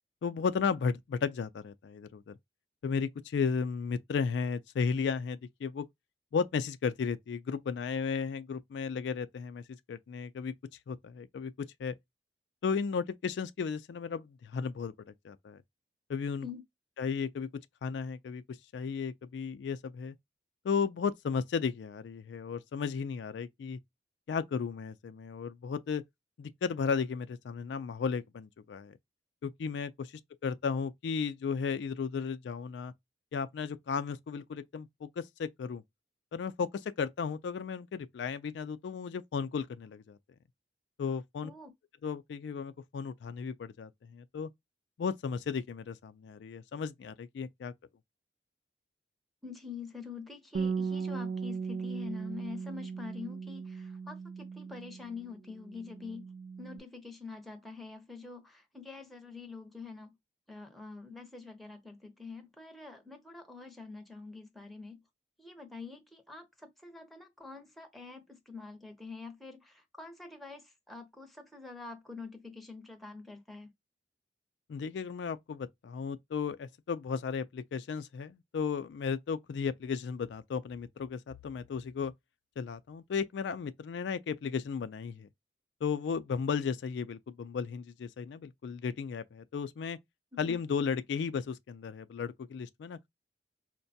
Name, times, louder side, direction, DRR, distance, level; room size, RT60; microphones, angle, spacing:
voice 1, 0.2-2.4 2.8-5.9 6.3-10.5 10.9-11.9 12.6-14.9 15.2-15.6 16.1-16.5 17.0-17.5 17.8-20.1 20.6-23.8 24.3-26.0 26.4-29.0 29.4-32.9 33.3-35.8 36.3-40.2 41.0-41.5 42.0-44.5 45.0-47.7 74.7-82.1 82.6-85.3 85.8-90.0 90.4-93.1, left 6 dB, 80° left, 0.3 m, -34 dB
voice 2, 49.4-56.3 56.6-60.1 60.5-65.0 65.4-73.7 90.3-90.6, left 4 dB, ahead, 0.7 m, -46 dB
Bass guitar, 50.5-55.2 55.5-56.8, right 5 dB, 55° right, 0.3 m, -37 dB
4.5 x 2.2 x 2.6 m
head